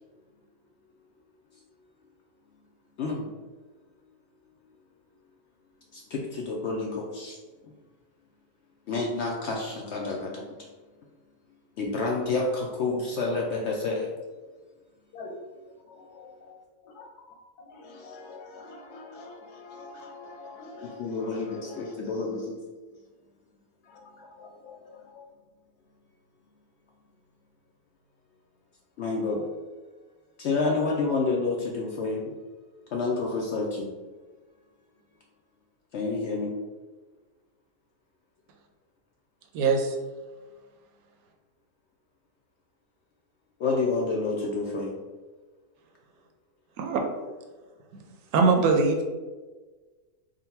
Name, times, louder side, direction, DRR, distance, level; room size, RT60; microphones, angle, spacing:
voice 1, 5.9-7.4 7.6-7.7 8.9-10.5 11.8-14.1 21.0-22.5 29.0-29.5 30.4-32.2 32.9-33.9 35.9-36.5 43.6-45.0, left 3 dB, 70° left, 0.6 m, -29 dB
voice 2, 15.9-16.6 16.8-17.1 17.6-21.9 23.8-25.2, left 3 dB, 90° left, 1.3 m, -45 dB
voice 3, 39.5-40.0 46.8-47.0 48.3-49.0, right 4 dB, 75° right, 1.0 m, -22 dB
3.8 x 2.2 x 4.2 m
omnidirectional pair, 1.6 m